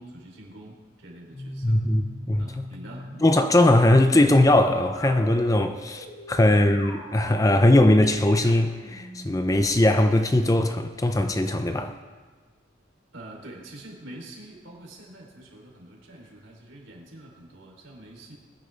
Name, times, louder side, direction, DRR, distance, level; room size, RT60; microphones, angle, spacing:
voice 1, 0.0-1.8 2.4-3.1 6.3-6.6 13.1-18.3, right 1 dB, 75° right, 3.3 m, -45 dB
sound 1, 1.3-9.9, left 1 dB, 80° left, 3.7 m, -42 dB
voice 2, 1.6-2.5 3.2-11.9, left 1 dB, 15° left, 0.5 m, -20 dB
20.5 x 10.0 x 3.4 m
head